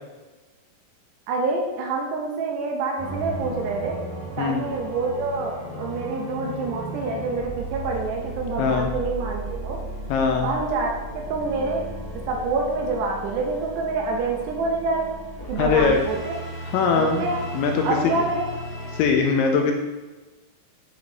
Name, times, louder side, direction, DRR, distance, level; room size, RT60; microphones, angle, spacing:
voice 1, 1.3-4.0 4.4-9.9 10.4-11.9 12.3-15.2 15.5-16.3 17.0-17.4 17.8-18.5, right 3 dB, 75° right, 0 dB, 2.7 m, -27 dB
sound 1, 3.0-19.0, right 1 dB, 30° left, 1.0 m, -35 dB
voice 2, 8.6-8.9 10.1-10.5 15.6-16.0 16.7-17.3 17.5-17.9 18.9-19.7, left 5 dB, 85° left, 3 dB, 2.8 m, -21 dB
8.2 x 5.0 x 4.0 m, 1.2 s
omnidirectional pair, 5.7 m